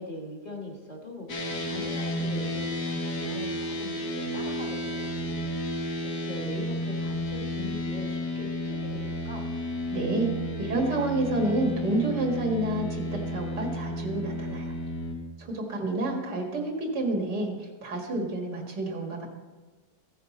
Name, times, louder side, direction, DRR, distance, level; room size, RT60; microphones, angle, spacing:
voice 1, 0.0-9.4, left 2 dB, 25° left, 0 dB, 1.4 m, -41 dB
Dist Chr E oct, 1.3-15.1, left 1 dB, 75° left, 1.7 m, -32 dB
voice 2, 9.9-10.3 10.6-14.7 15.4-17.5 17.8-19.3, right 2 dB, 90° right, 0 dB, 2.4 m, -29 dB
15.0 x 6.7 x 4.1 m, 1.3 s
omnidirectional pair, 1.8 m